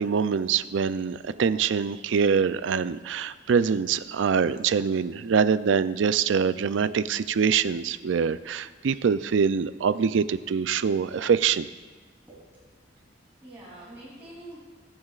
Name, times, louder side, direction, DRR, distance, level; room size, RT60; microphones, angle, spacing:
voice 1, 0.0-11.7, right 6 dB, 75° right, 14 dB, 0.4 m, -24 dB
voice 2, 12.3-12.7 13.4-14.6, right 1 dB, 15° right, -10 dB, 3.2 m, -45 dB
22.0 x 8.7 x 2.4 m, 1.4 s
head